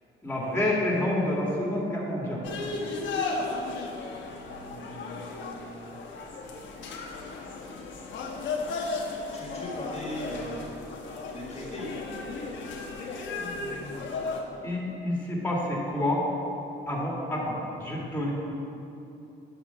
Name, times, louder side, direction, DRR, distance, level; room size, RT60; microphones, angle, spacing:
voice 1, 0.2-2.5 13.3-14.1 14.6-16.2 16.9-18.3, left 1 dB, 10° left, -4 dB, 2.0 m, -29 dB
sound 1, 2.4-14.4, left 3 dB, 70° left, 1.1 m, -35 dB
voice 2, 4.5-6.1 9.3-10.7 11.3-11.9, equal, 30° left, -4 dB, 1.8 m, -40 dB
9.8 x 4.5 x 5.7 m, 2.9 s
cardioid pair, 90°, 20 cm